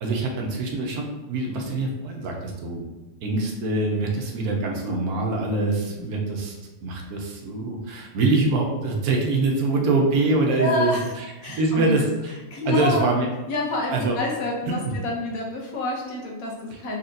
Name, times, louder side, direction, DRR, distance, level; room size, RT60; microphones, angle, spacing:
voice 1, 0.0-2.9 3.2-6.5 6.8-12.0 12.7-13.3 13.9-14.2 14.8-14.9, right 3 dB, 85° right, 0 dB, 1.3 m, -24 dB
voice 2, 10.5-11.1 11.4-11.9 12.5-13.1 13.5-17.0, left 2 dB, 75° left, -1 dB, 1.3 m, -27 dB
4.2 x 3.3 x 2.6 m, 1.1 s
omnidirectional pair, 1.5 m